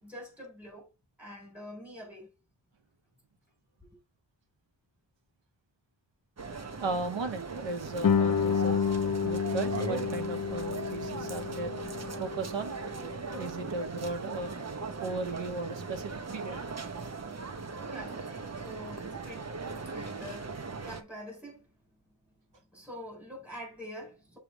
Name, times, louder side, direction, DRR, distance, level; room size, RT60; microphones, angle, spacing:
voice 1, 0.0-0.9 1.2-2.3 17.8-18.3 18.5-19.5 19.9-21.7 22.7-24.4, equal, 5° right, 4.3 m, -45 dB
sound 1, 6.4-21.0, right 4 dB, 35° right, 1.0 m, -39 dB
voice 2, 6.8-8.8 9.2-11.8 12.2-12.7 13.3-14.5 15.0-16.6 17.3-17.4, right 3 dB, 75° right, 1.3 m, -36 dB
Guitar, 8.0-13.4, left 7 dB, 45° left, 0.6 m, -30 dB
6.8 x 3.4 x 4.6 m
wide cardioid pair, 130°, 46 cm